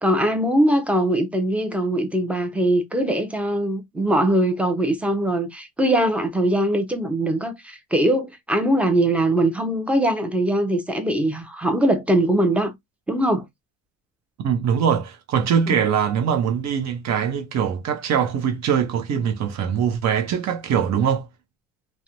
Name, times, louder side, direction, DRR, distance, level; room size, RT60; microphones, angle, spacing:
voice 1, 0.0-12.7 13.1-13.4 15.7-15.8, right 1 dB, 5° right, 0.5 m, -21 dB
voice 2, 14.4-21.3, right 7 dB, 55° right, 0.7 m, -22 dB
2.4 x 2.1 x 2.8 m
cardioid pair, 110°, 33 cm